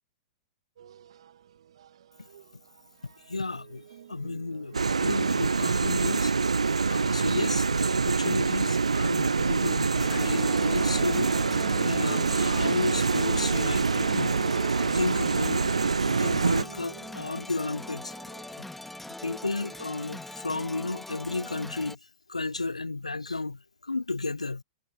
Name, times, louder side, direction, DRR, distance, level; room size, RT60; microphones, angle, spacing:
sound 1, 0.8-19.8, right 10 dB, 60° right, 1.8 m, -52 dB
voice 1, 3.0-6.3 6.9-14.4 14.8-15.7 16.1-18.1 18.5-18.7 19.2-22.0 22.3-24.6, left 3 dB, 90° left, 0.4 m, -33 dB
sound 2, 4.7-16.6, right 4 dB, 80° right, 0.4 m, -25 dB
sound 3, 10.0-22.0, left 2 dB, 5° left, 2.6 m, -41 dB
figure-of-eight pair, 105°, 3 cm